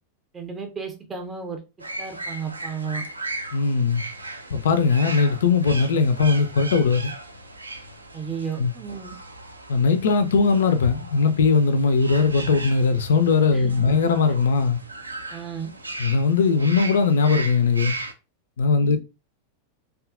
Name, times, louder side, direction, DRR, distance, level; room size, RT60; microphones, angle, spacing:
voice 1, 0.3-1.6 2.0-3.0 8.1-9.1 13.5-13.9 15.3-15.7 18.8-19.0, right 6 dB, 20° right, 0.5 m, -33 dB
sound 1, 1.8-18.1, right 2 dB, 80° right, 0.3 m, -37 dB
voice 2, 3.5-4.0 4.5-7.1 8.6-8.7 9.7-14.8 16.0-17.9 18.6-19.0, left 4 dB, 60° left, 0.3 m, -20 dB
2.7 x 2.3 x 2.4 m
figure-of-eight pair, 90°, 0 cm